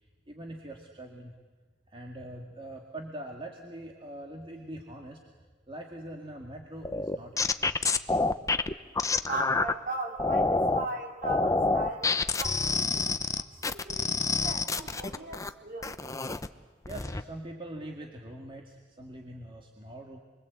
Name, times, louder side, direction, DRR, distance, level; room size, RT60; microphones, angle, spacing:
voice 1, 0.0-1.3 1.9-5.2 5.7-7.7 16.9-20.2, right 1 dB, 30° right, 1 dB, 2.1 m, -43 dB
sound 1, 6.8-9.7 10.2-10.9 11.2-15.5 15.8-16.5 16.9-17.2, left 3 dB, 20° left, 0.8 m, -27 dB
voice 2, 9.2-13.2 13.5-16.0, right 2 dB, 50° right, 2 dB, 4.0 m, -38 dB
28.5 x 22.5 x 8.3 m, 1.4 s
head